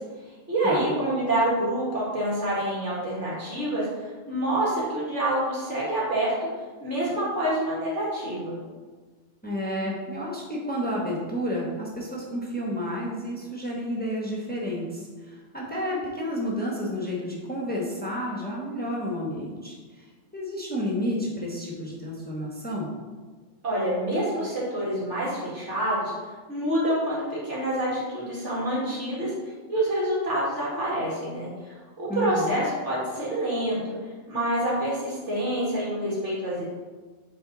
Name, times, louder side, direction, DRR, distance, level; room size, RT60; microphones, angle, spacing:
voice 1, 0.5-3.9 4.3-6.3 6.8-8.6 23.6-26.1 26.5-29.3 29.7-31.5 32.0-33.9 34.3-36.6, right 1 dB, 85° right, -6 dB, 2.5 m, -27 dB
voice 2, 9.4-20.0 20.3-22.9 32.1-32.5, equal, 10° left, -4 dB, 1.1 m, -31 dB
7.9 x 4.0 x 3.9 m, 1.4 s
omnidirectional pair, 1.2 m